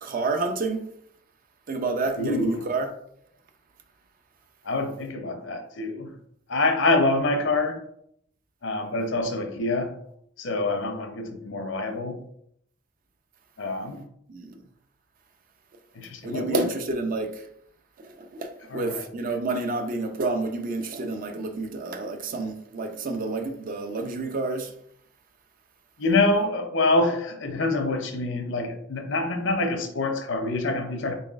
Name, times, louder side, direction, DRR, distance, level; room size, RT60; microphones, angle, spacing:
voice 1, 0.0-0.8 1.7-2.9 14.3-14.5 16.2-17.3 18.3-24.7, right 3 dB, 45° right, 0.4 m, -29 dB
voice 2, 2.2-2.6 4.6-6.1 6.5-7.8 8.6-9.9 10.4-12.2 13.6-14.0 15.9-16.7 18.7-19.4 26.0-31.1, left 2 dB, 70° left, 0.6 m, -26 dB
4.0 x 3.3 x 2.4 m
head